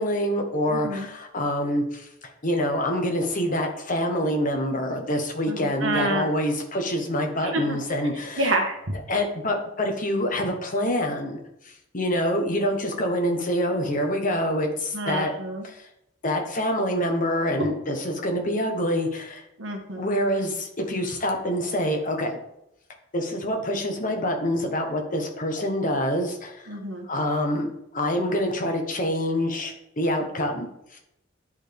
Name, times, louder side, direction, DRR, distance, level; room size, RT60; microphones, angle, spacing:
voice 1, 0.0-2.1 2.4-8.5 9.1-11.4 11.9-15.3 15.6-15.9 16.2-19.4 20.0-22.4 23.1-26.8 27.1-31.0, equal, 45° left, 3 dB, 1.3 m, -26 dB
voice 2, 0.7-1.1 5.5-6.3 7.4-7.8 8.4-8.8 14.9-15.6 19.6-20.1 26.7-27.1, right 1 dB, 85° right, 3 dB, 1.4 m, -28 dB
10.0 x 4.1 x 3.5 m, 0.82 s
head